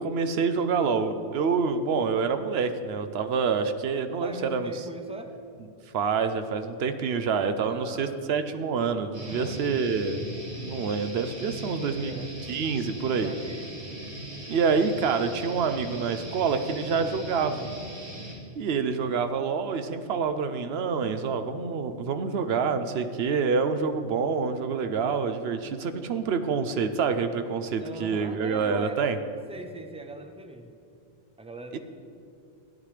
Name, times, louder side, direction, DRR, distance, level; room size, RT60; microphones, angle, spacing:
voice 1, 0.0-4.7 5.9-10.2 10.6-12.1 12.5-13.3 14.5-17.7 18.6-29.2 31.7-31.8, right 5 dB, 70° right, 9 dB, 0.9 m, -27 dB
voice 2, 4.2-5.4 7.7-8.2 9.2-9.6 11.8-12.3 13.2-13.8 27.8-29.1 29.5-30.8 31.4-31.8, right 2 dB, 10° right, 5 dB, 0.4 m, -41 dB
sound 1, 9.1-18.3, right 1 dB, 90° right, 2.3 m, -39 dB
14.5 x 10.0 x 3.3 m, 2.5 s
omnidirectional pair, 1.1 m